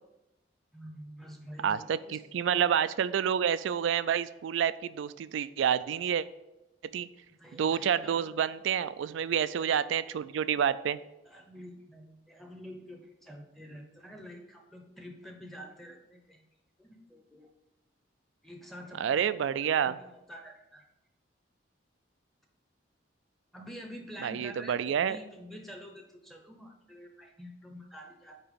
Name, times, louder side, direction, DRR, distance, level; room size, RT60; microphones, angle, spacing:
voice 1, 0.7-2.2 2.5-2.6 7.2-8.4 11.3-16.4 16.8-17.5 18.4-19.3 19.8-20.8 23.5-28.4, equal, ahead, 1 dB, 0.7 m, -47 dB
voice 2, 1.6-6.3 6.9-7.1 7.5-11.0 19.0-20.0 24.2-25.2, right 8 dB, 80° right, 16 dB, 0.3 m, -28 dB
8.7 x 2.9 x 5.1 m, 0.95 s
head